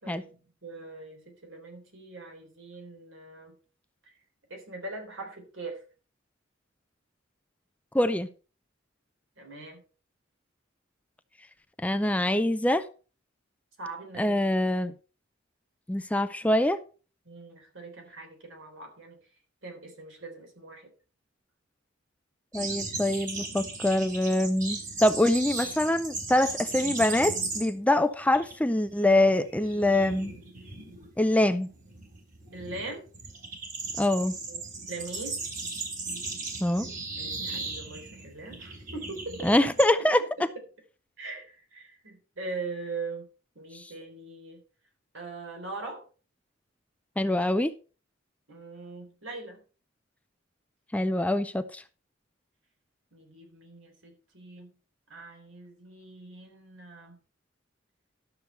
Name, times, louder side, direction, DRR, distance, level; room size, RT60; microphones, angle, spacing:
voice 1, 0.0-3.5 4.5-5.8 9.4-9.8 13.8-14.4 17.3-19.2 19.6-20.9 32.5-33.0 34.5-34.6 34.9-35.4 37.2-39.5 41.2-43.3 43.6-44.6 45.1-46.0 48.5-49.6 53.1-54.8 55.1-57.2, right 3 dB, 70° right, 3.7 m, -41 dB
voice 2, 7.9-8.3 11.8-12.9 14.2-14.9 15.9-16.8 22.5-30.3 31.2-31.7 34.0-34.3 36.6-36.9 39.4-40.2 43.7-43.9 47.2-47.7 50.9-51.8, left 1 dB, 5° left, 0.4 m, -24 dB
sound 1, 22.5-27.9 28.2-28.5 28.9-39.9, right 3 dB, 45° right, 3.6 m, -37 dB
12.0 x 6.8 x 4.4 m
head